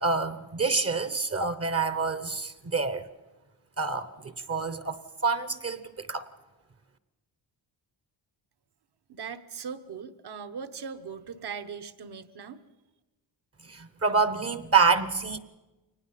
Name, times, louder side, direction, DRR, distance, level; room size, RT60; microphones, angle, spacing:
voice 1, 0.0-3.1 3.8-6.3 13.6-15.4, right 4 dB, 30° right, 13 dB, 0.9 m, -27 dB
voice 2, 9.1-12.6, right 6 dB, 55° right, 9 dB, 1.1 m, -39 dB
23.5 x 19.5 x 5.7 m, 1.1 s
cardioid pair, 105°, 45 cm